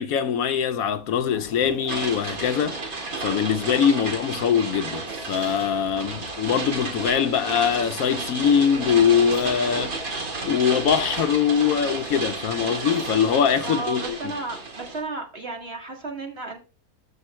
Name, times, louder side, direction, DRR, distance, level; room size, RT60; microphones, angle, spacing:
voice 1, 0.0-14.2, left 8 dB, 70° left, 1.0 m, -23 dB
Zipper (clothing), 0.8-3.7 4.1-4.2 4.8-6.6 7.4-7.5 8.4-10.0 12.4-13.3 14.7-15.2, left 4 dB, 40° left, 1.1 m, -46 dB
sound 1, 1.9-15.0, right 3 dB, 65° right, 2.3 m, -32 dB
voice 2, 13.6-16.6, right 3 dB, 40° right, 2.1 m, -33 dB
13.5 x 5.6 x 3.1 m
omnidirectional pair, 1.6 m